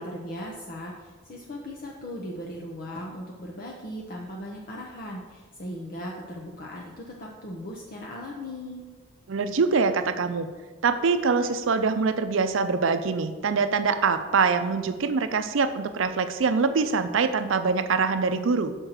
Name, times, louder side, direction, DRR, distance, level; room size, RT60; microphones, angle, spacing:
voice 1, 0.0-8.9, equal, 45° left, -2 dB, 0.8 m, -38 dB
voice 2, 9.3-10.5 10.8-18.8, right 4 dB, 80° right, 10 dB, 0.5 m, -24 dB
6.1 x 4.4 x 6.5 m, 1.4 s
head